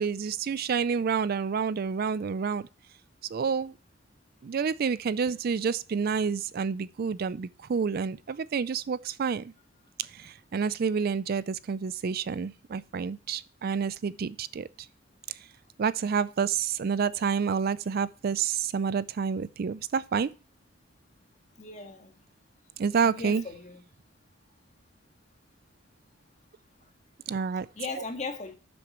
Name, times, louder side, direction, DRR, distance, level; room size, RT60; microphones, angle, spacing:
voice 1, 0.0-2.6 3.3-3.7 4.4-9.5 10.0-14.7 15.3-15.4 15.8-20.3 22.8-23.4 27.3-27.7, right 6 dB, 50° right, 0.4 m, -29 dB
voice 2, 21.6-22.1 23.0-23.8 27.7-28.5, left 4 dB, 35° left, 1.7 m, -38 dB
12.0 x 6.9 x 3.0 m
head